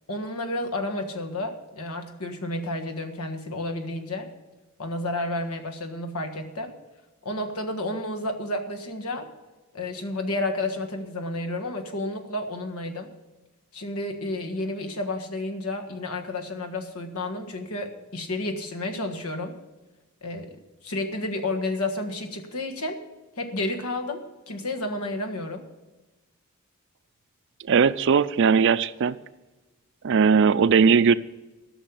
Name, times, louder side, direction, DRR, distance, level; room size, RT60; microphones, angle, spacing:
voice 1, 0.1-4.3 4.8-6.7 7.2-9.3 9.7-13.1 13.7-19.6 20.2-23.0 23.4-24.2 24.5-25.7, left 2 dB, 90° left, 1.5 m, -31 dB
voice 2, 27.7-29.2 30.0-31.1, right 6 dB, 55° right, 0.4 m, -19 dB
13.5 x 6.4 x 8.3 m
head